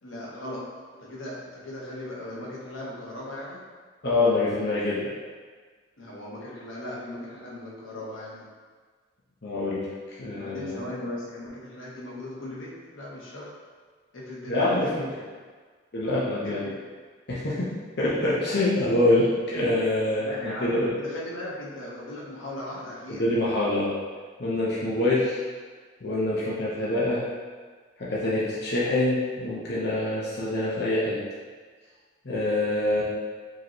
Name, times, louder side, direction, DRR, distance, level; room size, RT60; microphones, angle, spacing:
voice 1, 0.0-0.7 1.0-3.6 6.0-8.5 10.3-13.5 14.1-15.3 16.4-16.7 20.2-23.3, left 1 dB, 90° left, -5 dB, 1.0 m, -38 dB
voice 2, 4.0-5.0 9.4-9.9 10.2-10.8 14.5-15.1 15.9-16.6 17.3-17.7 18.0-20.9 23.1-23.9 24.4-25.4 26.0-27.2 28.0-31.2 32.2-33.0, left 2 dB, 55° left, -7 dB, 0.7 m, -25 dB
5.1 x 3.0 x 3.0 m, 1.5 s
head